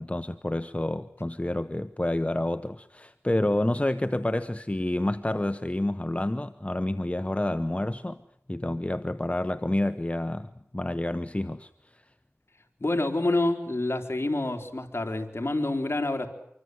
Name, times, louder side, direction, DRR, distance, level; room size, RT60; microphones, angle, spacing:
voice 1, 0.0-8.2 8.5-12.0, left 1 dB, 25° left, 1.0 m, -29 dB
voice 2, 12.8-16.3, left 2 dB, 55° left, 3.9 m, -27 dB
26.0 x 24.0 x 8.0 m
wide cardioid pair, 40°, 5 cm